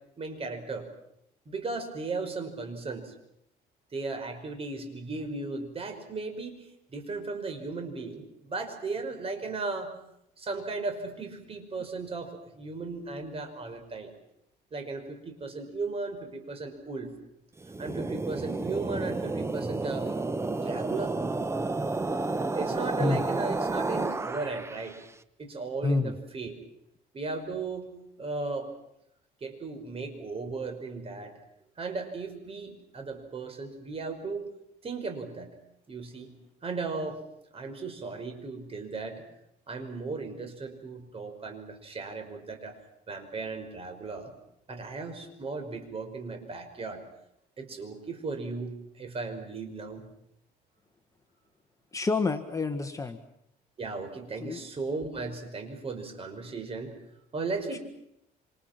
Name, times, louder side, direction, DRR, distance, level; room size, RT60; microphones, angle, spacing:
voice 1, 0.2-0.9 1.5-3.1 3.9-9.9 10.4-14.1 14.7-17.1 17.8-20.1 20.6-21.1 22.5-25.0 25.4-26.5 27.1-27.9 28.2-28.7 29.4-31.3 31.8-34.5 34.8-35.5 35.9-36.3 36.6-37.2 37.5-39.3 39.7-42.8 43.1-44.3 44.7-47.0 47.6-50.1 53.8-56.9 57.3-57.8, right 3 dB, 35° right, 6 dB, 5.6 m, -36 dB
sound 1, 17.6-25.0, right 3 dB, 15° right, 1.0 m, -31 dB
voice 2, 25.8-26.1 51.9-53.2 54.4-54.6 57.7-57.8, left 3 dB, 20° left, 7 dB, 1.7 m, -28 dB
27.5 x 27.0 x 6.0 m, 0.78 s
cardioid pair, 110°, 17 cm